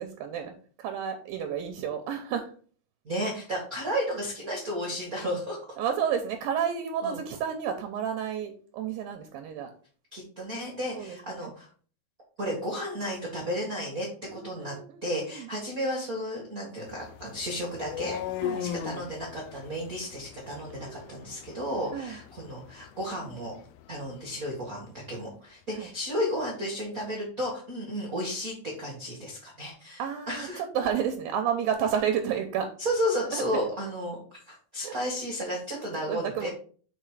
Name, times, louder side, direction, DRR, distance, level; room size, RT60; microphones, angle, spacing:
voice 1, 0.0-2.5 5.8-9.7 10.9-11.5 14.3-15.5 18.4-18.7 20.7-21.4 21.9-22.2 25.8-25.9 30.0-32.7 33.3-33.6 34.8-34.9 36.0-36.5, right 8 dB, 80° right, 6 dB, 2.2 m, -31 dB
voice 2, 3.0-5.6 7.0-7.2 10.1-11.7 12.4-14.8 15.0-18.2 18.6-23.5 23.9-30.6 32.8-36.5, equal, 55° right, -2 dB, 0.9 m, -33 dB
sound 1, 16.9-24.8, left 10 dB, 80° left, 2.1 m, -39 dB
6.8 x 4.4 x 4.8 m, 0.43 s
omnidirectional pair, 4.8 m